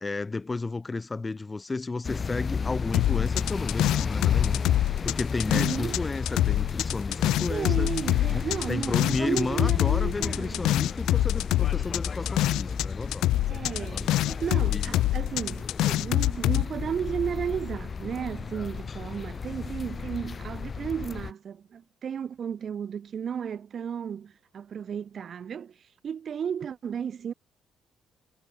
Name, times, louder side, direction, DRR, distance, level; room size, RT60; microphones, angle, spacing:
voice 1, 0.0-4.6 5.0-7.9 8.3-13.3 13.9-14.1 14.7-14.9 18.5-18.7, left 3 dB, 25° left, 0.7 m, -33 dB
sound 1, 2.0-21.3, left 5 dB, 40° left, 1.1 m, -33 dB
sound 2, 2.9-6.0 6.3-12.9 13.1-16.6, left 15 dB, 80° left, 0.3 m, -25 dB
voice 2, 5.5-6.0 7.5-10.6 13.5-25.8 26.0-27.3, right 8 dB, 55° right, 1.7 m, -33 dB
supercardioid pair, 70°, 0 cm